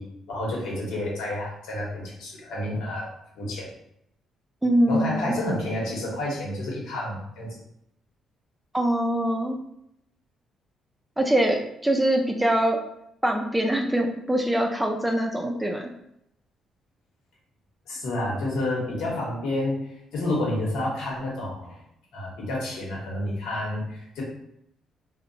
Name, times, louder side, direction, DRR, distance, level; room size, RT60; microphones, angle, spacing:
voice 1, 0.0-3.1 3.3-3.7 4.9-7.5 17.9-21.8 22.1-24.2, left 1 dB, 85° left, -4 dB, 1.0 m, -30 dB
voice 2, 4.6-5.4 8.7-9.6 11.2-12.8 13.2-15.9, right 1 dB, 10° right, 2 dB, 0.4 m, -23 dB
2.7 x 2.0 x 2.6 m, 0.77 s
cardioid pair, 90°, 0 cm